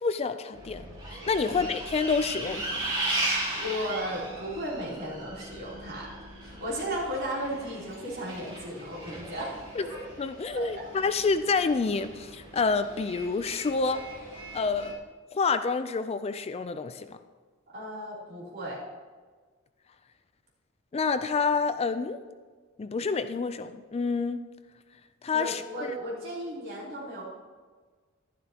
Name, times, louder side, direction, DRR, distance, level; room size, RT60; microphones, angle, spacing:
voice 1, 0.0-0.8 1.3-2.9 9.8-9.9 10.2-14.0 14.5-15.0 15.3-17.2 20.9-22.2 22.8-24.4 25.2-25.9, left 4 dB, 30° left, 11 dB, 0.4 m, -28 dB
Bus, 0.5-14.9, right 1 dB, 25° right, 3.1 m, -37 dB
voice 2, 3.2-9.6 10.5-10.8 17.7-18.8 25.3-27.2, equal, 50° right, -6 dB, 3.2 m, -35 dB
12.0 x 11.0 x 2.9 m, 1.5 s
head